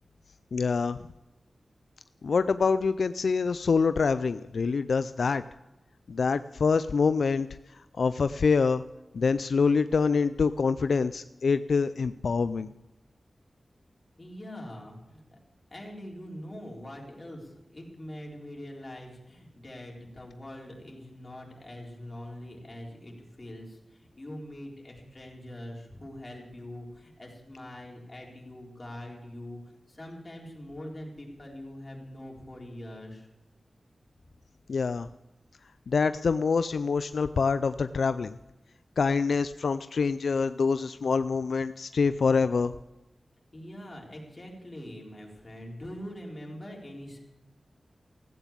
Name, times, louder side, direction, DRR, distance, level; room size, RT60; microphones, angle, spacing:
voice 1, 0.5-1.0 2.2-5.4 6.1-7.5 7.7-8.8 9.1-12.7 34.7-35.1 35.9-38.3 39.0-42.7, left 5 dB, 80° left, 12 dB, 0.4 m, -25 dB
voice 2, 14.2-15.4 15.7-33.3 43.5-47.2, left 1 dB, 30° left, -1 dB, 4.1 m, -43 dB
15.5 x 9.1 x 7.3 m, 1.0 s
wide cardioid pair, 70°, 0 cm